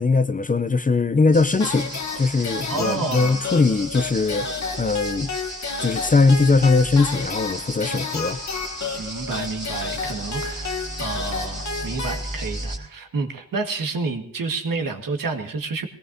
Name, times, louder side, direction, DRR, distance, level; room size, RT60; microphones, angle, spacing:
voice 1, 0.0-4.5 4.8-5.3 5.8-8.4, left 3 dB, 25° left, 0.5 m, -20 dB
sound 1, 1.3-12.8, right 1 dB, 30° right, 3.3 m, -35 dB
sound 2, 1.6-12.7, left 4 dB, 55° left, 1.2 m, -32 dB
voice 2, 2.7-3.4 9.0-15.9, right 4 dB, 80° right, 1.7 m, -29 dB
20.5 x 18.0 x 2.7 m
wide cardioid pair, 115°, 33 cm